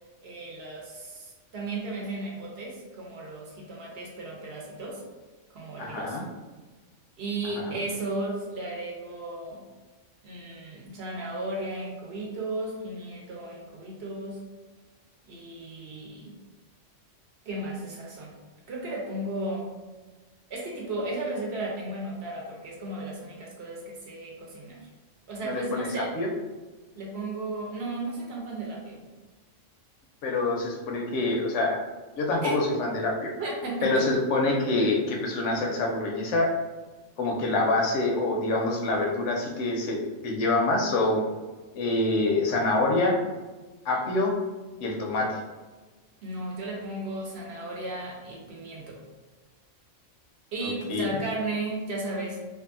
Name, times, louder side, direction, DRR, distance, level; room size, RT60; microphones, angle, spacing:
voice 1, 0.2-5.0 5.5-6.2 7.2-9.6 10.2-14.4 15.3-16.4 17.5-18.3 18.7-19.7 20.5-24.8 25.3-26.1 26.9-29.0 32.4-32.6 33.4-34.1 46.2-49.0 50.5-52.4, right 2 dB, 65° right, -2 dB, 0.8 m, -34 dB
voice 2, 5.8-6.2 7.7-7.8 25.4-25.9 26.1-26.3 30.2-31.8 32.2-33.3 33.8-36.5 37.2-41.2 41.7-43.2 43.8-44.3 44.8-45.4 50.6-51.1, left 2 dB, 75° left, 0 dB, 0.9 m, -26 dB
2.6 x 2.4 x 2.5 m, 1.3 s
omnidirectional pair, 1.3 m